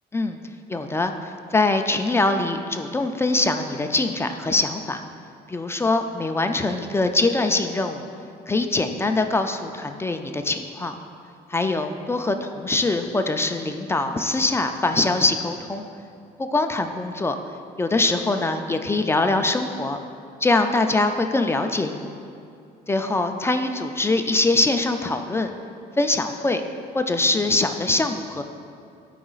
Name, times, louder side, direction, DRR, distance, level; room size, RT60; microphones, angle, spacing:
voice 1, 0.7-5.0 5.5-8.1 8.5-10.9 11.5-15.8 16.4-17.3 17.8-20.0 20.4-22.1 22.9-25.5 26.0-26.6 26.9-28.4, left 2 dB, 15° left, 6 dB, 0.3 m, -23 dB
12.0 x 5.0 x 2.4 m, 2.5 s
cardioid pair, 110°, 17 cm